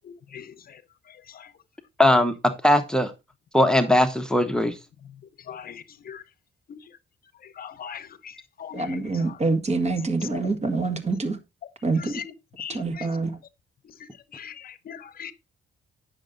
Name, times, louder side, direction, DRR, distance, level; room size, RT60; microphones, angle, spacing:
voice 1, 2.0-2.3 2.6-3.1 3.5-4.7, left 1 dB, 5° left, 1.0 m, -19 dB
voice 2, 7.6-8.0 8.6-9.0 10.3-10.4 12.0-12.2 12.6-13.0 14.3-14.5 14.9-15.3, left 8 dB, 55° left, 0.8 m, -38 dB
voice 3, 8.7-11.4 11.8-12.2 12.7-13.3, right 3 dB, 35° right, 1.9 m, -26 dB
9.8 x 6.5 x 3.8 m
cardioid pair, 130°, 19 cm